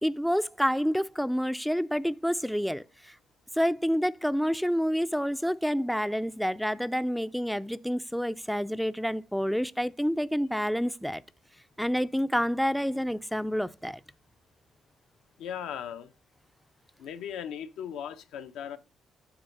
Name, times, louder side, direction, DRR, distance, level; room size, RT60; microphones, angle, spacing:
voice 1, 0.0-3.1 3.5-11.2 11.8-14.0, equal, ahead, 0.3 m, -28 dB
voice 2, 15.4-16.1 17.0-18.8, left 8 dB, 90° left, 0.7 m, -37 dB
8.8 x 3.5 x 5.3 m
cardioid pair, 90°, 0 cm